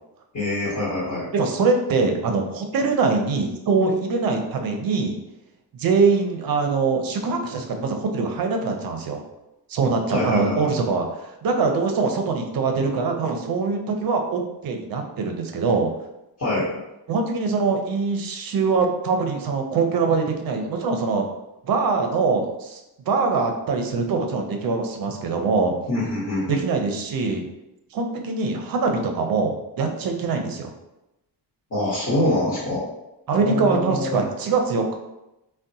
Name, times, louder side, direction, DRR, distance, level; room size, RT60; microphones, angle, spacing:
voice 1, 0.3-1.3 10.1-10.7 16.4-16.8 25.9-26.6 31.7-32.8 33.4-34.2, left 1 dB, 35° left, -9 dB, 0.9 m, -25 dB
voice 2, 1.3-5.2 5.7-9.2 9.7-15.9 17.1-21.3 21.6-22.8 23.1-25.7 26.5-27.4 27.9-30.7 33.3-35.0, right 4 dB, 55° right, 4 dB, 0.5 m, -23 dB
3.6 x 2.1 x 2.6 m, 0.92 s
wide cardioid pair, 150°, 43 cm